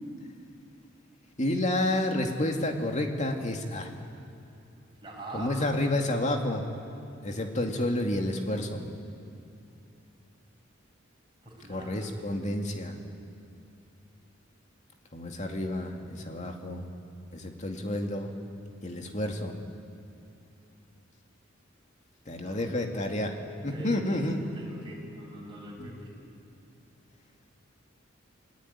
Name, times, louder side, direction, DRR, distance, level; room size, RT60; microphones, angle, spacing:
voice 1, 1.4-3.9 5.3-6.6 7.2-8.8 11.7-13.0 15.1-16.9 17.3-18.3 18.8-19.5 22.3-23.4 23.6-24.4 25.8-25.9, left 1 dB, 35° left, 3 dB, 2.5 m, -30 dB
voice 2, 5.0-5.6 11.4-12.0 22.4-22.6 23.7-26.1, right 1 dB, 25° right, -2 dB, 6.5 m, -43 dB
27.5 x 19.0 x 9.9 m, 2.8 s
head